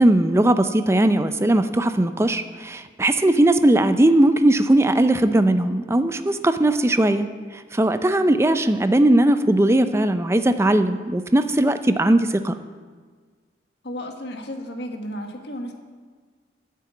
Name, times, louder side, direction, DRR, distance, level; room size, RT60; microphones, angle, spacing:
voice 1, 0.0-7.3 7.5-12.5, right 1 dB, 15° right, 10 dB, 0.5 m, -19 dB
voice 2, 13.8-15.7, equal, 70° left, 3 dB, 1.4 m, -33 dB
9.7 x 7.5 x 8.1 m, 1.5 s
head